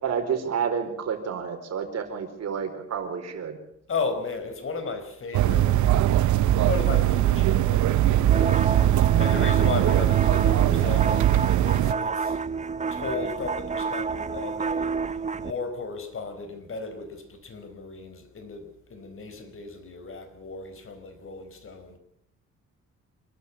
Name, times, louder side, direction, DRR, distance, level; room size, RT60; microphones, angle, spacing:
voice 1, 0.0-3.6, right 7 dB, 60° right, 4.7 m, -29 dB
voice 2, 3.9-5.8 6.2-12.4 12.9-22.0, left 4 dB, 45° left, 4.6 m, -35 dB
sound 1, 5.3-11.9, right 13 dB, 75° right, 0.8 m, -21 dB
sound 2, 8.3-15.5, right 5 dB, 25° right, 0.8 m, -30 dB
26.5 x 12.5 x 8.5 m
cardioid pair, 90°, 30 cm